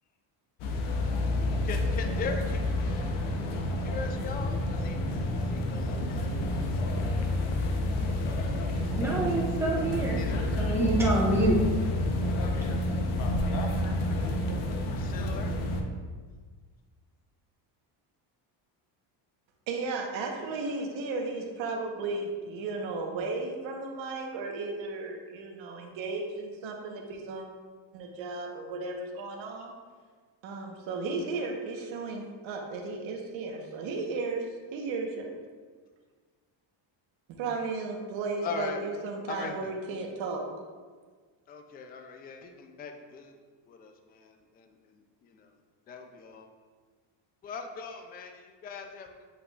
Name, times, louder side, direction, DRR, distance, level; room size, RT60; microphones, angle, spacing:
sound 1, 0.6-15.8, left 1 dB, 80° left, 0.9 m, -29 dB
voice 1, 1.6-2.6 3.8-6.5 10.2-10.5 14.9-15.6 38.4-38.8 39.3-39.7 41.5-43.4 43.7-45.5 45.9-46.5 47.4-49.2, left 4 dB, 20° left, 5 dB, 0.3 m, -40 dB
voice 2, 9.0-10.2 10.6-11.6, right 1 dB, 5° right, -4 dB, 1.1 m, -26 dB
voice 3, 19.7-27.5 27.9-29.7 30.4-34.5 34.7-35.3 37.3-40.5, right 3 dB, 65° right, 1 dB, 1.2 m, -34 dB
8.4 x 5.3 x 2.4 m, 1.5 s
cardioid pair, 140°, 49 cm